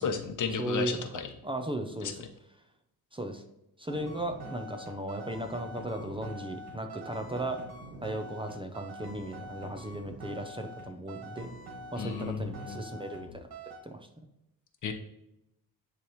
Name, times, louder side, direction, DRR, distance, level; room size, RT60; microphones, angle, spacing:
voice 1, 0.0-1.3 2.0-2.1 12.0-12.8 14.8-14.9, left 6 dB, 50° left, 6 dB, 0.9 m, -33 dB
voice 2, 0.6-1.0 1.4-2.2 3.1-3.4 3.8-7.6 8.0-11.5 11.9-13.5 13.8-14.1, right 1 dB, 15° right, 5 dB, 0.7 m, -36 dB
sound 1, 3.9-13.2 13.5-13.8, right 1 dB, 70° right, 1.9 m, -45 dB
9.8 x 3.3 x 3.1 m, 0.87 s
cardioid pair, 100°, 39 cm